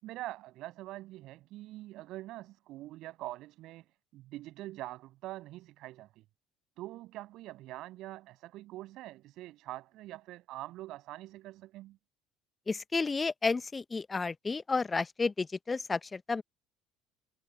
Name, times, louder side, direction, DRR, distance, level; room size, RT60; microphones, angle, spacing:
voice 1, 0.0-6.2 6.8-12.0, right 16 dB, 55° right, 7.5 m, -44 dB
voice 2, 12.7-16.4, left 4 dB, 25° left, 1.5 m, -31 dB
figure-of-eight pair, 60°, 0 cm